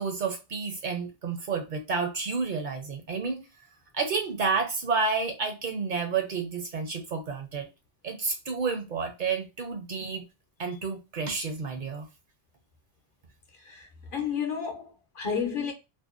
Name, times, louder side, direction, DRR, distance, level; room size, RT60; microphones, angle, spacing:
voice 1, 0.0-3.4 3.9-7.7 8.0-10.2 10.6-12.1, right 4 dB, 60° right, 0.6 m, -30 dB
voice 2, 13.6-15.7, left 7 dB, 60° left, 0.8 m, -32 dB
2.6 x 2.1 x 2.3 m
omnidirectional pair, 1.0 m